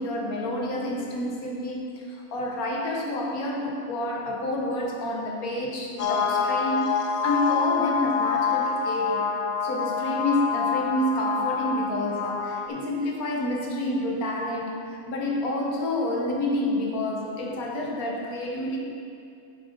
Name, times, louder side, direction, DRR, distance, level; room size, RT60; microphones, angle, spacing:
voice 1, 0.0-1.8 2.1-9.3 9.6-18.8, left 1 dB, 90° left, 0 dB, 1.6 m, -28 dB
sound 1, 6.0-12.7, left 6 dB, 60° left, 0.7 m, -26 dB
7.6 x 6.7 x 5.1 m, 2.5 s
omnidirectional pair, 1.5 m